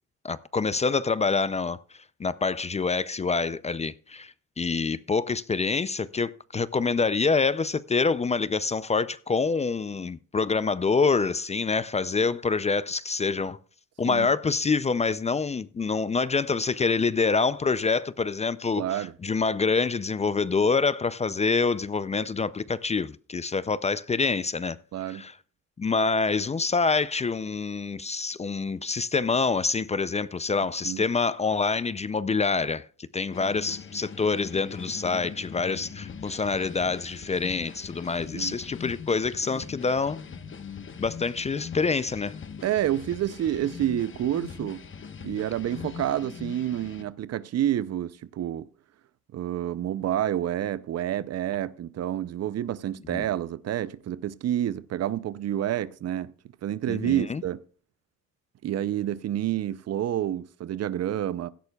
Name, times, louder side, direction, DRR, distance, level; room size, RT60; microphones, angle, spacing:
voice 1, 0.2-1.8 2.2-13.6 14.0-24.8 25.1-25.4 25.8-40.2 41.0-42.3 53.1-53.2 56.9-57.4, left 4 dB, 20° left, 0.4 m, -26 dB
voice 2, 18.8-19.1 24.9-25.2 30.8-31.0 38.3-38.6 42.6-44.8 45.2-48.7 49.3-56.3 56.6-57.6 58.6-61.5, right 11 dB, 55° right, 0.6 m, -29 dB
sound 1, 33.3-47.0, left 6 dB, 40° left, 1.2 m, -41 dB
16.5 x 11.5 x 2.3 m
cardioid pair, 90°, 30 cm